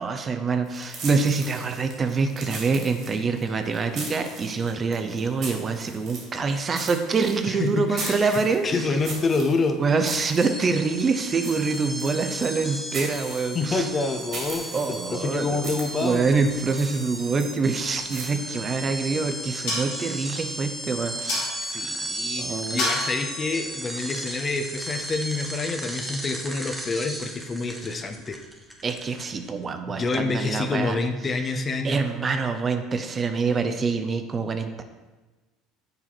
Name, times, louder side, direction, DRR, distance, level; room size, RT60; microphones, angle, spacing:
voice 1, 0.0-8.9 9.8-13.9 14.7-15.6 16.0-21.7 22.4-22.8 28.8-31.0 31.8-34.8, right 4 dB, 35° right, 7 dB, 0.6 m, -25 dB
sound 1, 0.6-18.3, right 3 dB, 55° right, 2.2 m, -40 dB
voice 2, 7.5-8.3 8.6-9.8 13.5-16.2 21.6-22.4 22.7-28.4 29.9-32.0, left 3 dB, 35° left, 6 dB, 0.7 m, -27 dB
sound 2, 10.4-29.5, right 1 dB, 5° right, 1.1 m, -35 dB
sound 3, 18.5-24.9, left 2 dB, 70° left, 2.2 m, -34 dB
6.9 x 4.2 x 4.0 m, 1.2 s
hypercardioid pair, 70°, 0 cm